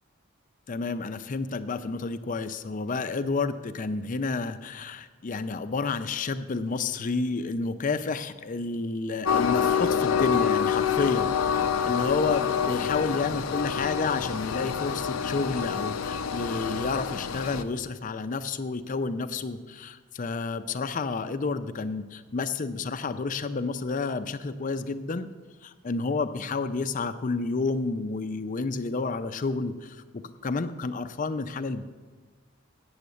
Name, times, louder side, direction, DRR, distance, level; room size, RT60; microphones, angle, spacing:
voice 1, 0.7-25.3 25.6-31.8, left 4 dB, 40° left, 11 dB, 0.5 m, -30 dB
Train, 9.3-17.6, left 7 dB, 90° left, 0.5 m, -27 dB
8.4 x 7.2 x 7.8 m, 1.3 s
head